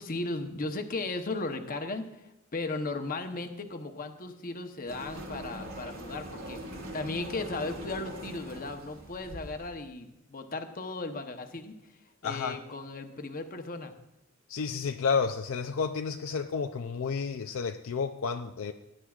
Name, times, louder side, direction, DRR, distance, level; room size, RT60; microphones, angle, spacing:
voice 1, 0.0-2.1 2.5-6.6 6.9-11.7 12.2-13.9, left 3 dB, 40° left, 6 dB, 0.9 m, -36 dB
sound 1, 4.9-9.7, right 1 dB, 75° right, 2.4 m, -42 dB
voice 2, 12.2-12.6 14.5-18.7, left 5 dB, 70° left, 7 dB, 0.4 m, -31 dB
18.5 x 9.9 x 2.4 m, 0.90 s
head